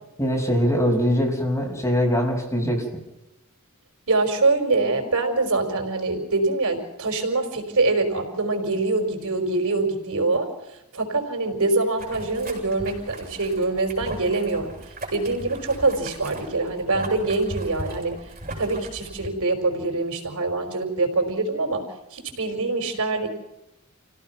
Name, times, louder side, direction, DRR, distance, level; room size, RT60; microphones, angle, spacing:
voice 1, 0.2-2.8, equal, 15° left, 0 dB, 5.8 m, -22 dB
voice 2, 4.1-10.5 10.9-14.7 15.1-18.1 18.6-21.8 22.1-23.3, right 3 dB, 80° right, 4 dB, 5.2 m, -24 dB
Boiling, 12.0-19.3, right 1 dB, 40° right, 7.7 m, -38 dB
28.5 x 17.0 x 6.0 m, 0.92 s
head